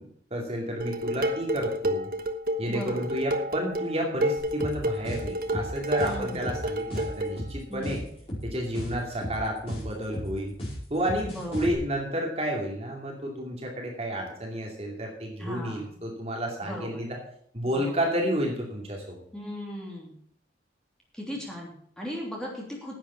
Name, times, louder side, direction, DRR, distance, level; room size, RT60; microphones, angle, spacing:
voice 1, 0.0-2.1 2.6-8.0 8.4-10.5 10.9-17.1 17.5-19.2, equal, 35° right, 0 dB, 2.5 m, -31 dB
Dishes pots and pans, 0.8-7.4, equal, 50° right, 1.1 m, -30 dB
voice 2, 2.7-3.1 6.0-6.5 7.7-8.1 11.3-11.7 15.4-16.0 16.6-17.0 17.6-17.9 19.3-20.2 21.1-23.0, equal, 5° left, -3 dB, 3.1 m, -38 dB
sound 1, 4.4-11.7, equal, 30° left, 5.1 m, -35 dB
10.5 x 8.2 x 7.2 m, 0.65 s
head